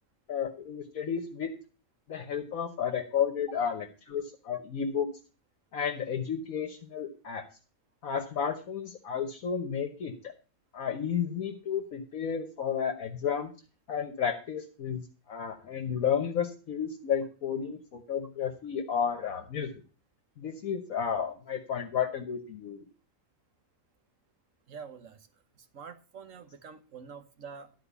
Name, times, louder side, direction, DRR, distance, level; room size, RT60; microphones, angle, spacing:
voice 1, 0.3-1.5 2.1-5.1 5.7-7.4 8.0-10.3 10.7-13.5 13.9-19.7 20.4-22.9, left 7 dB, 75° left, 1.5 m, -32 dB
voice 2, 24.7-25.3 25.7-27.9, right 6 dB, 65° right, 1.4 m, -46 dB
11.5 x 4.6 x 8.2 m
omnidirectional pair, 1.5 m